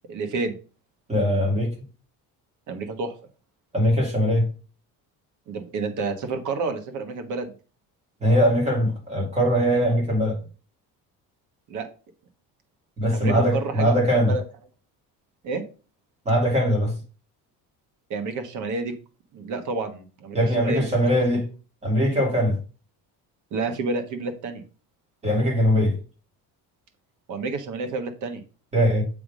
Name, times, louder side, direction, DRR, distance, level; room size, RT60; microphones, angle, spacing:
voice 1, 0.1-0.6 2.7-3.1 5.5-7.5 11.7-11.9 13.1-14.4 15.4-15.6 18.1-18.9 19.3-21.1 23.5-24.6 27.3-28.4, right 3 dB, 50° right, 1.3 m, -30 dB
voice 2, 1.1-1.7 3.7-4.5 8.2-10.4 13.0-14.3 16.3-16.9 20.3-21.4 21.8-22.6 25.2-26.0 28.7-29.0, equal, 15° right, 2.5 m, -21 dB
7.7 x 3.7 x 4.9 m
cardioid pair, 170°, 38 cm